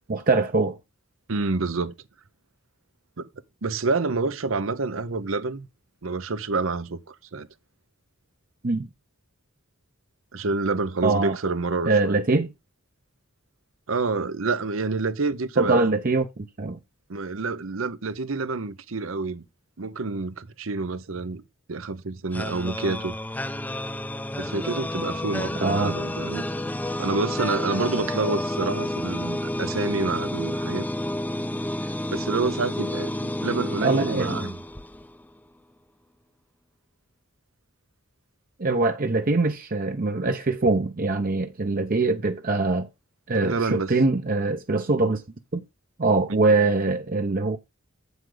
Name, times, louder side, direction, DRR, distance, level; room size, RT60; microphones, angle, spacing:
voice 1, 0.1-0.8 8.6-8.9 11.0-11.4 11.9-12.5 15.6-16.8 25.6-25.9 33.8-34.4 38.6-42.9 43.3-45.2 45.5-45.6 46.0-47.6, right 3 dB, 45° right, 0.7 m, -23 dB
voice 2, 1.3-1.9 3.2-3.3 3.6-5.7 6.0-7.5 10.3-12.2 13.9-16.0 17.1-19.4 19.8-21.4 21.7-23.1 24.4-26.5 27.0-30.9 32.1-33.1 33.4-34.6 43.4-44.0 46.3-46.4, right 3 dB, 80° right, 0.8 m, -28 dB
sound 1, 22.3-35.3, left 1 dB, 10° left, 0.5 m, -30 dB
8.1 x 7.8 x 3.9 m
head